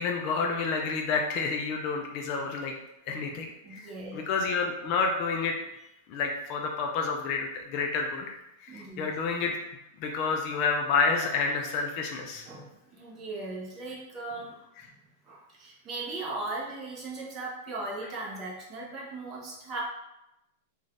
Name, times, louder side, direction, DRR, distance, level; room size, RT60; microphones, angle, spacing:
voice 1, 0.0-2.7 3.1-3.8 4.1-5.5 6.1-8.3 8.6-9.5 10.0-12.4, left 4 dB, 40° left, 2 dB, 0.4 m, -29 dB
voice 2, 3.6-4.2 8.7-9.1 12.4-14.6 14.8-14.9 15.3-19.8, right 2 dB, 30° right, -3 dB, 0.9 m, -38 dB
3.9 x 2.4 x 3.2 m, 0.88 s
supercardioid pair, 155°, 0 cm